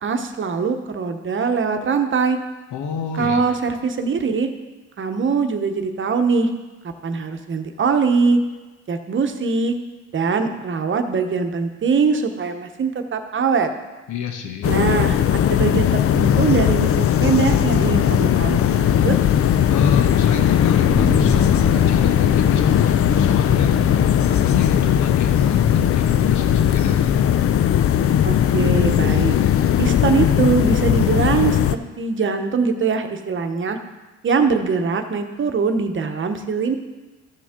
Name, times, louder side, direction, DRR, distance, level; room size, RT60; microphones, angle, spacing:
voice 1, 0.0-2.4 3.1-4.5 5.0-6.5 6.8-8.4 8.9-9.7 10.1-13.7 14.6-19.2 28.2-29.4 29.8-33.8 34.2-36.8, right 5 dB, 40° right, 6 dB, 1.0 m, -22 dB
voice 2, 2.7-3.4 14.1-14.7 19.7-27.1, left 7 dB, 80° left, 4 dB, 1.1 m, -28 dB
sound 1, 14.6-31.8, left 10 dB, 50° left, 0.5 m, -18 dB
Bass guitar, 20.9-27.1, left 1 dB, 10° left, 1.7 m, -30 dB
13.5 x 6.1 x 3.7 m, 1.2 s
cardioid pair, 90°, 30 cm